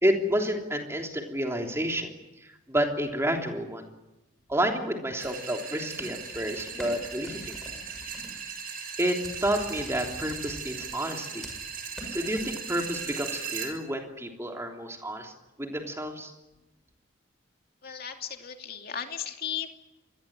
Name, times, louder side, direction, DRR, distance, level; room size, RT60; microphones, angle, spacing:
voice 1, 0.0-2.1 2.7-3.8 4.5-7.5 9.0-11.5 12.1-15.3 15.6-16.3, equal, 15° right, 2 dB, 3.3 m, -29 dB
sound 1, 5.2-13.7, right 6 dB, 45° right, 6.6 m, -38 dB
sound 2, 5.9-8.3 9.2-10.6 11.0-11.7 12.0-12.1, equal, ahead, 7.1 m, -45 dB
voice 2, 17.8-19.8, left 8 dB, 50° left, 4 dB, 2.7 m, -36 dB
26.0 x 21.0 x 9.0 m, 0.99 s
head